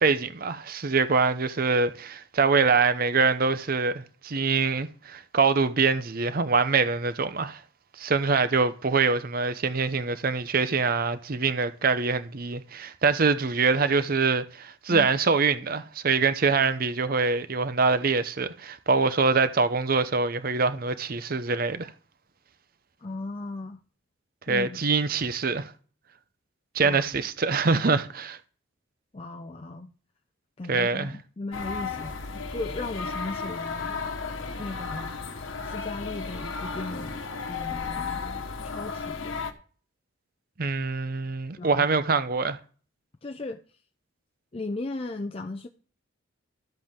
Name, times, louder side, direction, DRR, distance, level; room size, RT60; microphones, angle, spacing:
voice 1, 0.0-7.6 8.0-21.9 24.5-25.7 26.7-28.4 30.7-31.1 40.6-42.6, right 4 dB, 45° right, 0.7 m, -24 dB
voice 2, 23.0-23.8 24.5-24.8 26.8-27.0 29.1-29.9 30.6-33.9 34.6-39.4 41.6-41.9 43.2-43.6 44.5-45.7, left 2 dB, 30° left, 0.5 m, -37 dB
sound 1, 31.5-39.5, left 4 dB, 75° left, 1.2 m, -34 dB
13.0 x 7.7 x 3.6 m
head